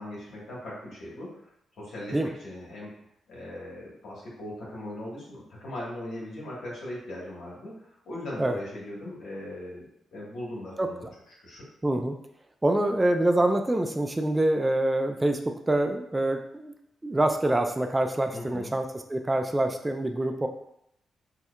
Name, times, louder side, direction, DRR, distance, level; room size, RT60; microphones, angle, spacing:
voice 1, 0.0-1.4 1.8-2.9 3.3-9.9 10.1-11.6 18.3-18.7, left 1 dB, 75° left, -6 dB, 1.4 m, -39 dB
voice 2, 11.8-12.1 12.6-16.7 17.0-20.5, right 1 dB, 20° right, 5 dB, 0.3 m, -25 dB
4.3 x 2.3 x 2.3 m, 0.76 s
cardioid pair, 65°, 0 cm